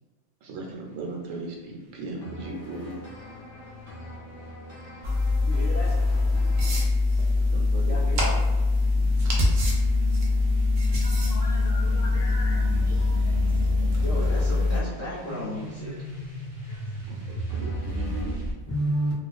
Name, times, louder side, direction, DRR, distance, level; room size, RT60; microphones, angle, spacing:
voice 1, 0.4-3.0 7.5-8.1 8.9-9.4 11.0-11.1 17.0-18.5, right 2 dB, 70° right, 0 dB, 0.9 m, -38 dB
sound 1, 0.7-18.5, right 1 dB, 35° right, 0.6 m, -39 dB
voice 2, 2.2-6.9 7.8-8.3 13.9-15.9 17.5-18.3 18.7-19.1, equal, 15° left, -10 dB, 0.5 m, -35 dB
sound 2, 5.0-14.8, left 2 dB, 90° right, 0.4 m, -23 dB
voice 3, 11.0-13.4 13.8-13.9 16.7-16.8 17.2-17.3, left 1 dB, 70° left, -5 dB, 0.9 m, -42 dB
2.4 x 2.3 x 2.4 m, 1.3 s
omnidirectional pair, 1.5 m